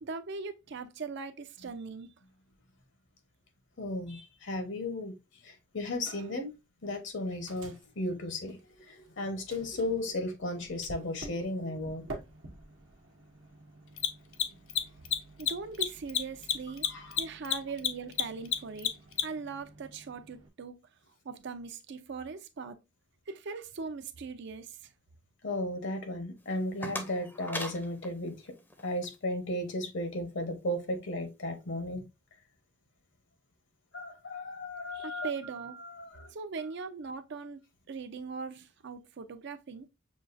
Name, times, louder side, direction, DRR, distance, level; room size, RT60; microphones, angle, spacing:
voice 1, 0.0-2.1 15.4-16.9 17.2-20.8 21.2-22.8 23.3-24.9 34.9-35.8 36.3-37.6 37.9-39.9, right 4 dB, 60° right, 0.5 m, -40 dB
voice 2, 3.8-5.2 5.4-6.5 6.8-8.6 8.9-12.1 16.9-17.2 25.4-28.5 28.8-32.1 33.9-35.3 35.8-36.3, left 1 dB, 65° left, 1.0 m, -35 dB
Microwave oven, 6.1-6.5 6.8-9.1 9.5-20.5, right 2 dB, 85° right, 0.9 m, -50 dB
Mechanisms, 10.8-10.9 13.9-19.5, left 10 dB, 85° left, 0.5 m, -30 dB
sound 1, 26.4-29.2, left 1 dB, 10° left, 0.6 m, -41 dB
6.2 x 2.3 x 2.5 m
head